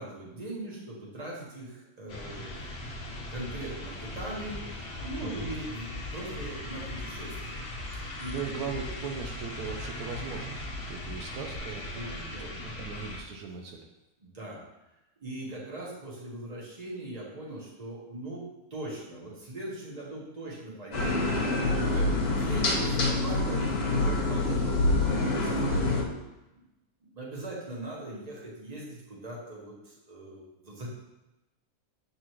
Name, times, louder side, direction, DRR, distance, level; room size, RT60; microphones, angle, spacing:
voice 1, 0.0-2.7 3.0-7.6 8.2-8.4 11.9-12.6 14.2-14.6 15.2-18.4 18.7-21.3 21.6-26.1 26.5-26.6 27.1-30.9, right 1 dB, 30° right, -4 dB, 1.3 m, -40 dB
sound 1, 2.1-13.2, left 1 dB, 50° left, 1.0 m, -40 dB
Bass drum, 4.1-4.6 4.9-5.5 5.8-6.4 6.8-7.4 7.7-8.3 8.6-9.3 9.6-10.2 10.5-11.1 11.5-11.6, left 3 dB, 50° right, 1.6 m, -43 dB
voice 2, 8.3-10.6 10.9-13.8 22.0-22.1, right 5 dB, 80° right, 2 dB, 1.2 m, -39 dB
sound 2, 20.9-26.0, left 2 dB, 85° left, 1.5 m, -26 dB
7.6 x 4.1 x 3.1 m, 0.98 s
omnidirectional pair, 1.6 m